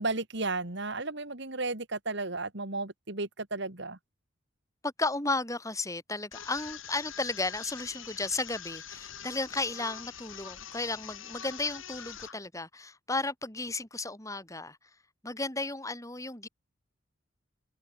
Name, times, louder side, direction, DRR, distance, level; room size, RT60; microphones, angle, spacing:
voice 1, 0.0-4.0, right 3 dB, 55° right, 2.5 m, -33 dB
voice 2, 4.8-14.8 15.2-16.5, left 3 dB, 15° left, 3.9 m, -34 dB
sound 1, 6.3-12.3, left 9 dB, 70° left, 3.0 m, -44 dB
head